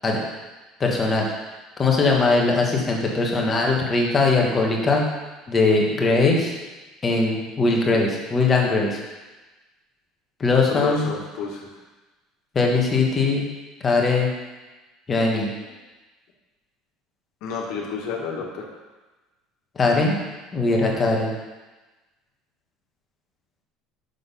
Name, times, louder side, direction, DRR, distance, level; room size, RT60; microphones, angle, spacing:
voice 1, 0.8-1.3 1.8-5.0 5.5-6.5 7.0-9.0 10.4-11.1 12.5-13.4 13.8-14.3 15.1-15.5 19.8-20.2 20.5-21.3, left 3 dB, 20° left, 0 dB, 1.3 m, -20 dB
voice 2, 10.6-11.7 17.4-18.7, left 5 dB, 60° left, -1 dB, 1.7 m, -30 dB
6.6 x 6.2 x 5.5 m, 1.2 s
cardioid pair, 170°, 0 cm